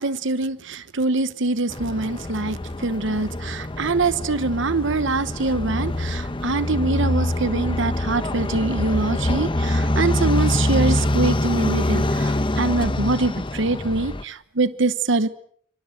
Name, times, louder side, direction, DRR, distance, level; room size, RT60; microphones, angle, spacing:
voice 1, 0.0-15.3, right 3 dB, 60° right, 13 dB, 1.0 m, -24 dB
sound 1, 1.7-14.2, left 1 dB, 25° left, 1.0 m, -25 dB
27.5 x 26.0 x 6.5 m, 0.63 s
head